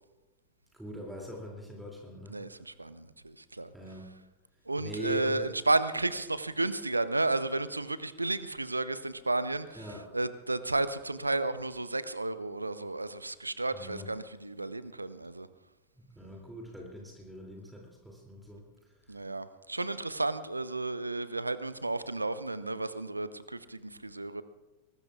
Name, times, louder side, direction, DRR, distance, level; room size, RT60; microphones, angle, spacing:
voice 1, 0.7-2.4 3.7-4.1 4.8-5.5 9.7-10.1 13.7-14.1 16.0-18.6, right 1 dB, 5° right, -1 dB, 2.8 m, -42 dB
voice 2, 2.3-3.7 4.7-9.9 10.1-15.5 19.1-24.4, right 2 dB, 80° right, 14 dB, 0.7 m, -32 dB
23.0 x 19.0 x 2.4 m, 1.1 s
figure-of-eight pair, 90°, 0 cm